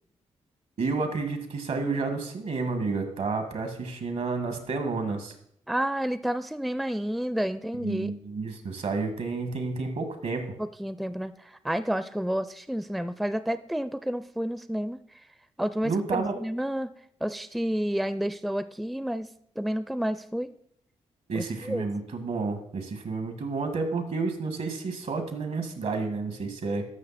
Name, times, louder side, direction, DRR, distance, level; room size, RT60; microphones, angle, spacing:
voice 1, 0.8-5.3 7.8-10.5 15.8-16.3 21.3-26.9, right 4 dB, 75° right, 7 dB, 1.7 m, -30 dB
voice 2, 5.7-8.1 10.6-15.0 15.6-16.9 17.2-19.3 19.6-20.5 21.3-21.9, equal, ahead, 14 dB, 0.4 m, -30 dB
13.5 x 5.8 x 4.2 m, 0.69 s
cardioid pair, 60°, 12 cm